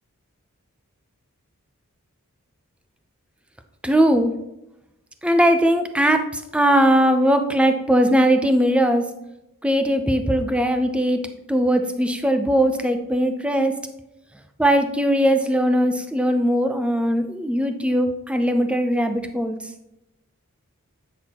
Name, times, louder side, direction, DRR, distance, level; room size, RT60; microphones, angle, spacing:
voice 1, 3.8-4.3 5.2-6.2 6.5-9.0 9.6-11.2 11.5-13.7 14.6-19.5, equal, 5° right, 7 dB, 0.5 m, -19 dB
9.1 x 6.1 x 2.9 m, 0.90 s
head